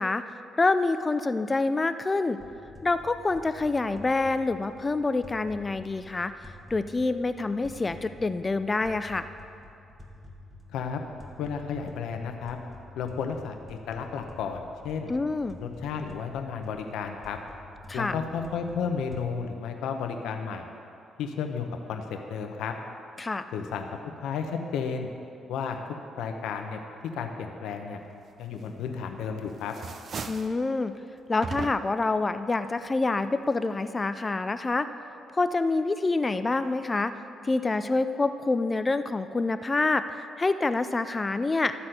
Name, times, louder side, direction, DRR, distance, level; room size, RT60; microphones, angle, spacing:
voice 1, 0.0-2.4 2.8-9.3 15.1-15.6 17.9-18.2 23.2-23.4 30.3-31.0 31.3-34.9 35.3-37.1 37.4-41.7, left 3 dB, 25° left, 11 dB, 0.3 m, -27 dB
sound 1, 2.4-19.2, left 2 dB, 10° right, 1.5 m, -49 dB
voice 2, 11.4-12.6 13.0-15.1 15.6-17.4 17.9-20.7 21.2-22.7 23.5-23.9 24.2-25.1 25.5-26.8 27.1-28.0 28.4-29.7, left 6 dB, 85° left, 4 dB, 0.9 m, -33 dB
sound 2, 28.8-29.3 29.6-30.6 31.4-32.1, right 5 dB, 50° right, 0.6 m, -37 dB
12.5 x 4.2 x 7.8 m, 2.6 s
cardioid pair, 90°, 0 cm